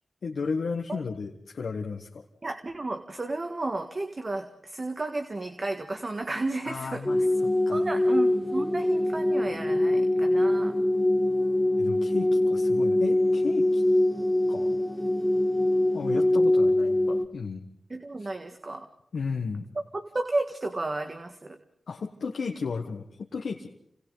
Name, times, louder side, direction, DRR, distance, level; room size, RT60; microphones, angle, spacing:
voice 1, 0.2-2.3 6.6-7.8 11.8-13.8 14.5-14.7 15.9-17.6 18.2-18.3 19.1-19.7 21.9-23.7, left 5 dB, 80° left, 1 dB, 1.5 m, -34 dB
voice 2, 2.4-7.0 7.7-10.8 17.9-18.9 19.9-21.6, right 2 dB, 45° right, 6 dB, 1.7 m, -33 dB
sound 1, 7.0-17.2, left 1 dB, 10° left, 1.8 m, -23 dB
30.0 x 26.5 x 4.0 m, 0.70 s
cardioid pair, 45°, 0 cm